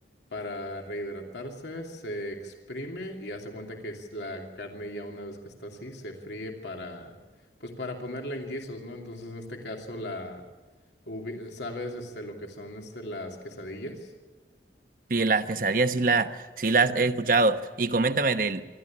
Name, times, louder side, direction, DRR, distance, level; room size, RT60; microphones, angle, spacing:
voice 1, 0.3-7.2 7.6-10.4 11.1-14.1 16.8-17.1, left 1 dB, 80° left, 2 dB, 2.8 m, -37 dB
voice 2, 15.1-18.6, right 3 dB, 50° right, 10 dB, 1.0 m, -24 dB
26.5 x 12.5 x 8.8 m, 1.3 s
head